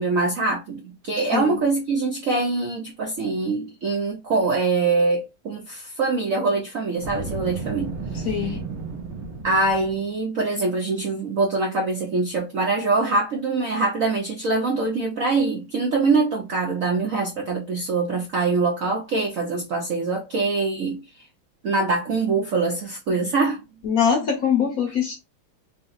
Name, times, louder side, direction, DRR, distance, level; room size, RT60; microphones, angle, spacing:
voice 1, 0.0-7.9 8.2-8.6 9.4-21.0 21.6-23.6, right 3 dB, 65° right, 0.8 m, -24 dB
Boom, 7.0-10.1, right 3 dB, 85° right, 1.8 m, -33 dB
voice 2, 8.2-8.6 23.8-25.1, left 7 dB, 55° left, 1.1 m, -22 dB
4.2 x 2.1 x 3.9 m
omnidirectional pair, 2.3 m